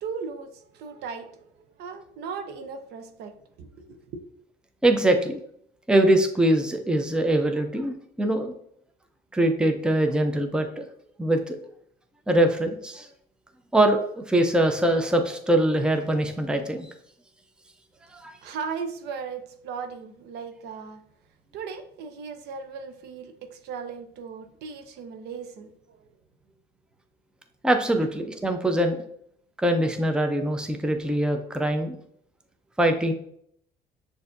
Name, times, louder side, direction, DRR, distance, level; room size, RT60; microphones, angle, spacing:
voice 1, 0.0-4.2 18.4-21.0 21.5-26.1, right 5 dB, 80° right, 0.6 m, -37 dB
voice 2, 4.8-5.4 5.9-8.5 9.3-10.8 11.2-11.6 12.3-13.1 13.7-16.9 18.1-18.3 27.6-29.0 29.6-32.0 32.8-33.1, right 1 dB, 5° right, 0.5 m, -23 dB
6.6 x 2.7 x 2.5 m
cardioid pair, 110°, 17 cm